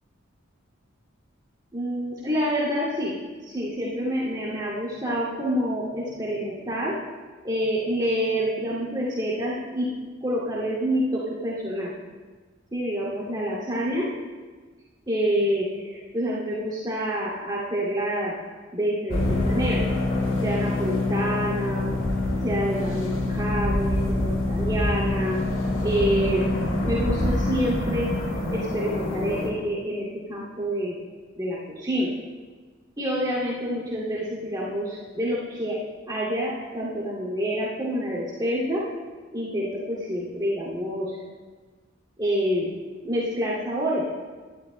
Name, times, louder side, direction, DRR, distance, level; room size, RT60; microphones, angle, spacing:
voice 1, 1.7-3.2 3.4-7.0 7.4-9.9 10.2-11.9 12.7-14.1 15.1-18.4 18.7-19.8 20.4-21.9 22.4-25.4 25.8-26.4 26.8-28.1 28.5-31.0 31.4-32.1 33.0-35.8 36.0-38.8 39.3-41.3 42.2-42.7 43.0-44.1, equal, 20° right, -8 dB, 2.5 m, -27 dB
sound 1, 19.1-29.5, left 1 dB, 70° left, 2.1 m, -25 dB
21.5 x 12.5 x 2.2 m, 1.4 s
head